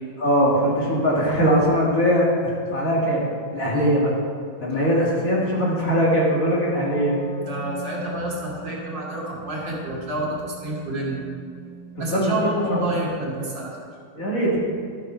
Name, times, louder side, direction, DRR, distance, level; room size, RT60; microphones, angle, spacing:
voice 1, 0.2-3.3 3.5-4.1 4.6-7.2 12.0-12.4 12.7-12.8 14.1-14.6, equal, 45° left, -5 dB, 2.4 m, -21 dB
Wind instrument woodwind instrument, 6.5-12.2, right 1 dB, 80° left, 3.2 m, -40 dB
voice 2, 7.4-11.2 12.0-13.8, right 1 dB, 70° right, -5 dB, 2.8 m, -28 dB
12.5 x 7.1 x 4.5 m, 2.3 s
omnidirectional pair, 2.1 m